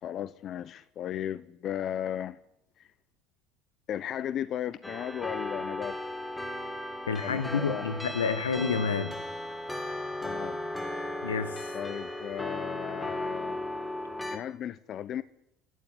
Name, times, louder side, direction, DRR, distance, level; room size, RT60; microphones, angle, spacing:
voice 1, 0.0-2.4 2.8-2.9 3.9-6.0 7.2-7.8 10.2-10.6 11.7-13.6 14.3-15.2, left 10 dB, 50° left, 1.0 m, -35 dB
sound 1, 4.8-14.4, left 1 dB, 10° left, 5.0 m, -36 dB
voice 2, 7.1-9.2 11.2-11.7, left 5 dB, 85° left, 1.6 m, -29 dB
28.5 x 14.0 x 10.0 m
hypercardioid pair, 70°, 0 cm